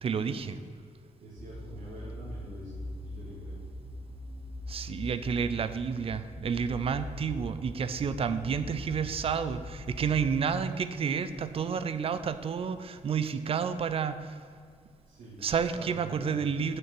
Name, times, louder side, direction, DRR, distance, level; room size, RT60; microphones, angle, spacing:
voice 1, 0.0-0.5 4.7-14.4 15.4-16.8, right 6 dB, 45° right, 12 dB, 0.5 m, -30 dB
voice 2, 1.2-3.6 7.1-7.2 7.7-7.8 15.1-15.4 15.7-16.5, right 2 dB, 85° right, -7 dB, 2.3 m, -46 dB
sound 1, 1.4-10.3, left 1 dB, 80° left, 2.6 m, -42 dB
6.9 x 6.5 x 7.7 m, 2.2 s
wide cardioid pair, 160°, 13 cm